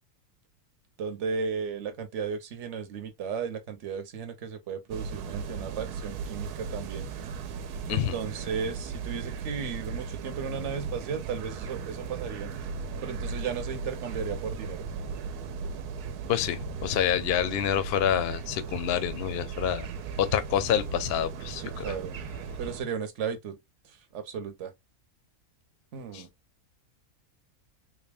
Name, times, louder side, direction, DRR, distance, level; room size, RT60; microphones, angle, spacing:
voice 1, 1.0-7.1 7.9-12.5 13.0-14.8 21.6-22.2 22.6-23.6 24.1-24.7 25.9-26.3, right 6 dB, 55° right, 1.0 m, -35 dB
sound 1, 4.9-22.8, right 5 dB, 85° right, 1.1 m, -37 dB
voice 2, 16.3-19.9 20.2-21.9 26.1-26.2, left 10 dB, 60° left, 0.7 m, -27 dB
3.7 x 2.2 x 3.4 m
omnidirectional pair, 1.6 m